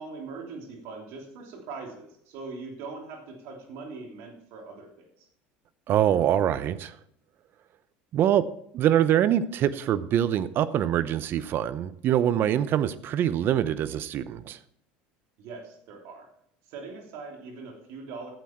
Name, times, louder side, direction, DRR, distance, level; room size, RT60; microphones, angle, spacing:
voice 1, 0.0-5.3 15.4-16.3 16.7-18.3, right 4 dB, 70° right, 2 dB, 3.0 m, -41 dB
voice 2, 5.9-6.9 8.1-8.5 8.7-14.6, right 10 dB, 50° right, 16 dB, 0.7 m, -24 dB
12.0 x 8.3 x 4.5 m, 0.70 s
supercardioid pair, 110°, 5 cm